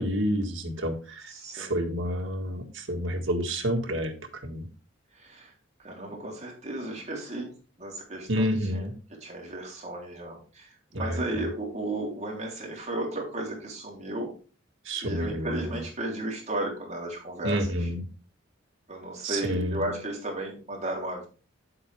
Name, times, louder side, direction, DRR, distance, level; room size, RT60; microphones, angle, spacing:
voice 1, 0.0-4.7 8.3-8.9 10.9-11.2 14.9-15.6 17.4-18.0 19.2-19.9, equal, 70° right, 3 dB, 1.8 m, -29 dB
voice 2, 1.3-1.7 5.1-5.5 5.8-8.5 8.7-8.9 9.2-14.3 15.0-17.8 18.9-21.3, right 1 dB, 35° right, -1 dB, 3.3 m, -34 dB
8.8 x 8.0 x 3.4 m, 0.36 s
head